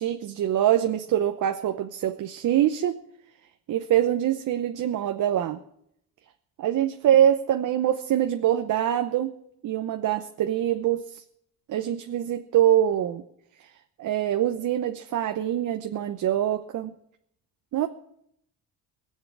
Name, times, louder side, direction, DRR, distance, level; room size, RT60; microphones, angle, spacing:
voice 1, 0.0-2.9 3.7-5.6 6.6-9.3 9.6-11.2 11.7-13.2 14.0-16.9 17.7-17.9, right 11 dB, 55° right, 7 dB, 0.9 m, -24 dB
20.0 x 7.7 x 7.3 m, 0.74 s
cardioid pair, 115°, 35 cm